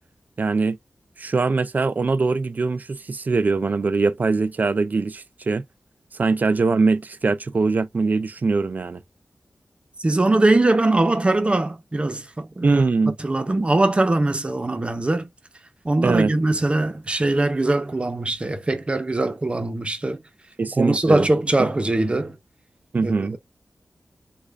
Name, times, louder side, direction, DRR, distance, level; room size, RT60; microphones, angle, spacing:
voice 1, 0.4-0.8 1.2-5.6 6.1-9.0 12.6-13.2 16.0-16.3 20.6-21.3 21.6-21.7 22.9-23.4, right 4 dB, 55° right, 0.4 m, -22 dB
voice 2, 10.0-12.8 13.2-15.3 15.8-20.2 20.8-22.4 23.0-23.4, right 2 dB, 35° right, 0.9 m, -21 dB
3.2 x 2.5 x 3.5 m
cardioid pair, 45°, 3 cm